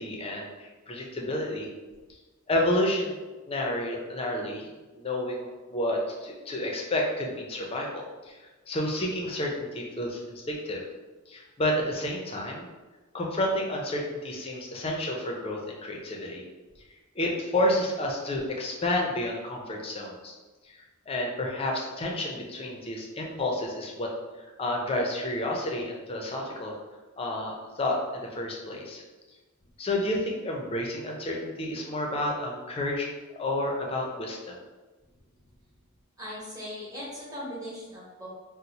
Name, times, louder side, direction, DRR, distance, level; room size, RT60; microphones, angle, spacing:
voice 1, 0.0-1.7 2.5-8.4 8.7-10.8 11.3-12.7 13.1-16.4 17.2-20.3 20.6-26.8 27.2-29.0 29.8-34.6, left 1 dB, 25° left, 0 dB, 0.5 m, -30 dB
voice 2, 36.2-38.3, equal, 15° right, -7 dB, 1.0 m, -39 dB
2.9 x 2.0 x 3.9 m, 1.3 s
head